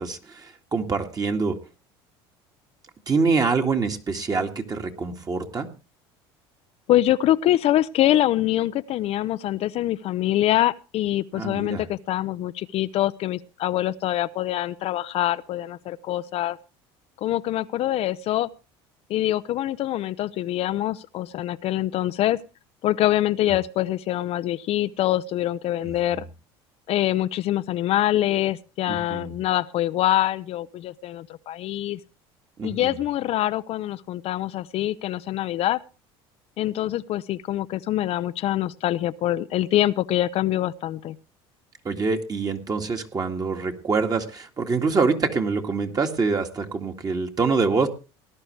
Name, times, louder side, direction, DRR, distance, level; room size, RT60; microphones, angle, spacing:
voice 1, 0.0-1.6 3.1-5.7 11.3-11.8 25.8-26.2 28.9-29.4 32.6-33.0 41.8-47.9, right 4 dB, 30° right, 3 dB, 1.9 m, -25 dB
voice 2, 6.9-16.6 17.2-18.5 19.1-22.4 22.8-26.2 26.9-32.0 32.6-35.8 36.6-41.2, left 13 dB, 50° left, 13 dB, 0.6 m, -24 dB
18.5 x 11.0 x 3.2 m, 0.32 s
supercardioid pair, 90°, 13 cm